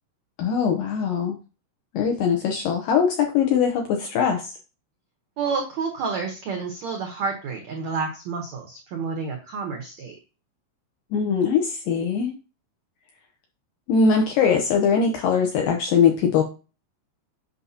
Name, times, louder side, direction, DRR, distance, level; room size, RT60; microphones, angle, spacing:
voice 1, 0.4-1.4 1.9-4.5 11.1-12.4 13.9-16.4, left 6 dB, 80° left, 3 dB, 2.0 m, -21 dB
voice 2, 5.4-10.1, right 5 dB, 85° right, 2 dB, 1.5 m, -29 dB
8.1 x 5.6 x 2.8 m, 0.34 s
omnidirectional pair, 4.9 m